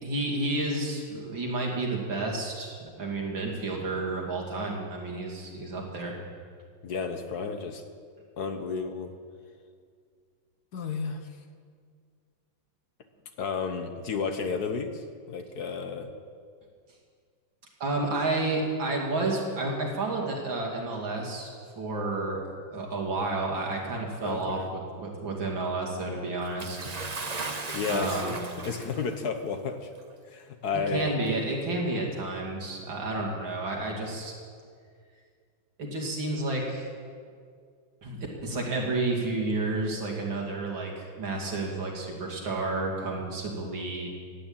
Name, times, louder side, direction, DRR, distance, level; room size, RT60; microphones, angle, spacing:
voice 1, 0.0-6.2 17.8-21.5 21.8-22.4 22.7-26.8 27.9-28.4 30.7-34.3 35.8-36.9 38.0-44.1, right 2 dB, 75° right, -1 dB, 3.2 m, -31 dB
voice 2, 6.8-7.8 8.4-9.1 10.7-11.3 13.4-16.1 24.2-24.7 27.7-28.4 28.6-29.9 30.3-31.2, left 5 dB, 60° left, 7 dB, 1.4 m, -32 dB
Bathtub (filling or washing) / Splash splatter, 26.6-29.2 30.1-30.2 31.2-31.3, right 3 dB, 35° right, 0.7 m, -36 dB
15.0 x 9.6 x 8.9 m, 2.1 s
omnidirectional pair, 2.1 m